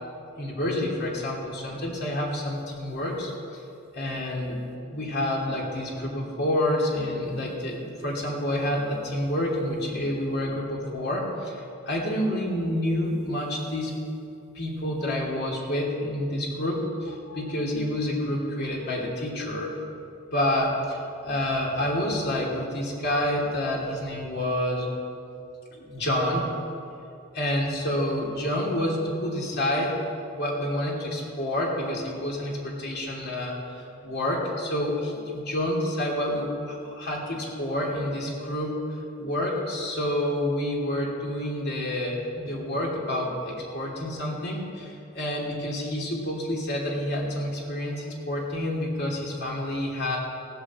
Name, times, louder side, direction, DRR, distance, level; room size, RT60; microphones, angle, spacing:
voice 1, 0.4-3.6 3.9-4.6 4.9-13.9 14.5-19.7 20.3-24.9 25.7-26.5 27.3-30.0 30.3-38.8 39.2-50.2, left 1 dB, 55° left, -3 dB, 2.9 m, -28 dB
17.5 x 7.9 x 7.4 m, 2.7 s
head